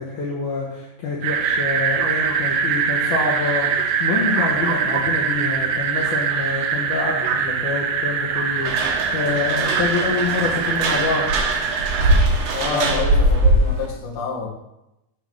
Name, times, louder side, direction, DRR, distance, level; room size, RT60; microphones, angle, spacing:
voice 1, 0.0-11.3 12.7-13.3, left 4 dB, 70° left, -3 dB, 2.1 m, -26 dB
sound 1, 1.2-12.2, right 6 dB, 85° right, 1.7 m, -23 dB
sound 2, 8.6-13.9, right 1 dB, 70° right, 1.5 m, -21 dB
voice 2, 12.5-14.5, left 4 dB, 45° left, -5 dB, 2.1 m, -28 dB
9.2 x 3.5 x 6.2 m, 0.91 s
omnidirectional pair, 4.3 m